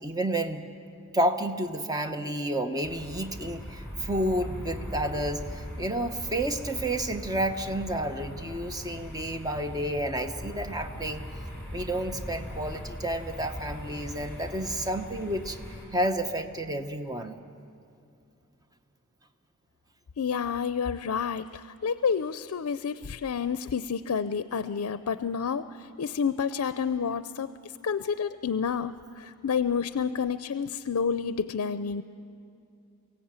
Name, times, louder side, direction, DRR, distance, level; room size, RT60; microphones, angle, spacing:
voice 1, 0.0-0.6 1.1-11.2 11.7-15.6 15.9-17.4, right 1 dB, 15° right, 7 dB, 0.9 m, -30 dB
sound 1, 2.8-15.8, equal, 10° left, 5.8 m, -40 dB
voice 2, 20.2-27.5 27.8-32.0, left 6 dB, 75° left, 14 dB, 0.5 m, -29 dB
23.5 x 16.5 x 8.9 m, 2.5 s
head